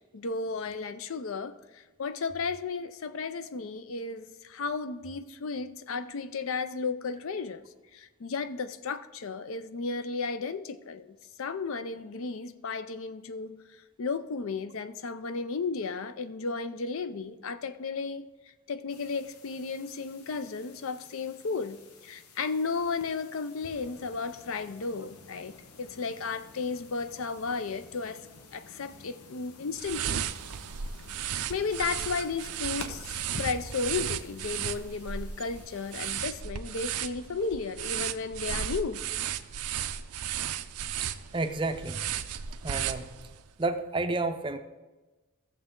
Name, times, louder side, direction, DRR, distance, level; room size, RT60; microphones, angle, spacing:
voice 1, 0.1-7.6 7.9-13.6 14.0-18.3 18.7-21.8 22.0-28.3 28.5-30.2 31.5-39.0, left 4 dB, 65° left, 0.5 m, -34 dB
sound 1, 18.9-36.2, left 3 dB, 85° left, 1.0 m, -49 dB
sound 2, 29.8-43.5, right 9 dB, 85° right, 0.5 m, -35 dB
voice 2, 41.0-42.0 42.6-43.1 43.6-44.6, right 3 dB, 20° right, 0.5 m, -31 dB
15.0 x 7.0 x 3.7 m
head